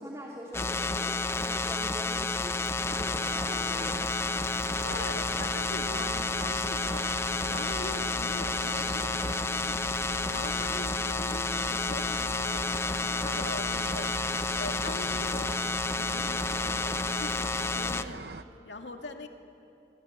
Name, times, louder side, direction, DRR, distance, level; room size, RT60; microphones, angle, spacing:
voice 1, 0.0-4.3 5.8-6.2, equal, 20° right, -2 dB, 2.8 m, -43 dB
sound 1, 0.5-18.0, left 3 dB, 15° left, 0.6 m, -30 dB
sound 2, 2.9-18.4, right 3 dB, 65° right, 0.9 m, -42 dB
voice 2, 4.8-7.1 7.5-9.8 10.3-12.7 13.2-14.2 14.6-15.6 16.0-18.3 18.7-19.3, left 2 dB, 85° left, 4 dB, 2.3 m, -42 dB
26.0 x 24.5 x 8.9 m, 2.7 s
head